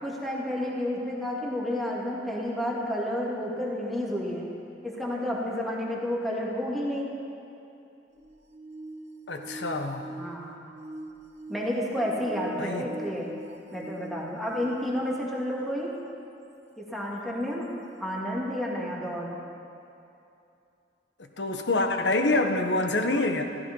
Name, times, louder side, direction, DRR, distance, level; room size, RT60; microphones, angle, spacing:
voice 1, 0.0-4.5 4.8-7.1 10.2-10.6 11.5-13.3 13.7-15.9 16.8-17.7 18.0-19.3, left 1 dB, ahead, -4 dB, 2.5 m, -30 dB
sound 1, 8.1-15.8 16.5-16.6 17.6-17.7, right 1 dB, 40° right, 0.9 m, -43 dB
voice 2, 9.3-10.1 12.6-12.8 21.4-23.4, left 2 dB, 70° left, 5 dB, 1.3 m, -26 dB
15.0 x 14.0 x 5.4 m, 2.6 s
head